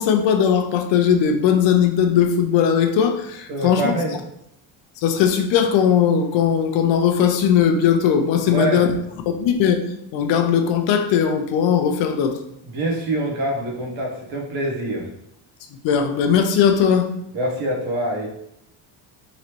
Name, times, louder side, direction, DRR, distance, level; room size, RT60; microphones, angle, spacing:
voice 1, 0.0-3.9 5.0-8.9 9.3-9.8 10.1-12.3 15.8-17.1, left 8 dB, 65° left, 6 dB, 0.7 m, -18 dB
voice 2, 3.5-4.2 8.5-8.9 12.6-15.1 17.3-18.3, right 1 dB, 75° right, -1 dB, 1.3 m, -25 dB
3.9 x 3.1 x 3.0 m, 0.78 s
cardioid pair, 145°, 48 cm